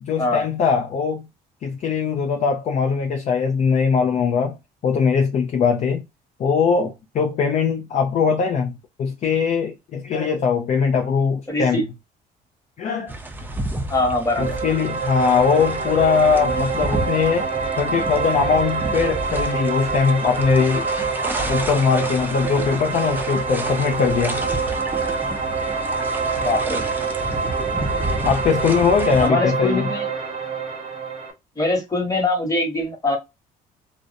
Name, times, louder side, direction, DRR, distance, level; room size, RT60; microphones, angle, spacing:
voice 1, 0.0-1.3 1.6-4.6 4.8-6.1 6.4-8.7 9.0-11.8 12.8-13.1 14.4-17.5 17.8-20.9 21.5-24.4 28.2-29.9, left 6 dB, 45° left, 0.4 m, -21 dB
voice 2, 11.5-11.8 13.9-14.5 26.4-26.8 29.2-30.1 31.6-33.2, left 1 dB, 20° left, 1.1 m, -22 dB
sound 1, 13.1-29.3, right 1 dB, 10° right, 0.5 m, -31 dB
sound 2, 14.3-31.3, right 4 dB, 40° right, 0.9 m, -26 dB
2.5 x 2.1 x 2.5 m
cardioid pair, 110°, 17 cm